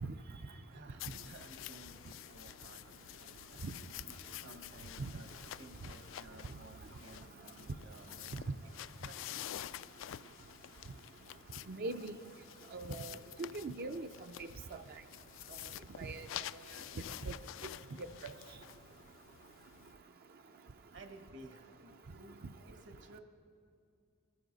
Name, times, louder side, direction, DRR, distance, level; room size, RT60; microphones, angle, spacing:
voice 1, 0.7-3.6 4.3-8.4 9.0-9.4 20.9-23.2, right 2 dB, 65° right, 5 dB, 1.3 m, -56 dB
sound 1, 1.0-19.9, left 12 dB, 70° left, 0.3 m, -49 dB
voice 2, 11.7-12.1 12.7-14.1 14.4-14.5 16.0-16.3 17.2-17.3, right 2 dB, 50° right, 6 dB, 0.5 m, -40 dB
21.5 x 13.5 x 4.0 m, 2.6 s
head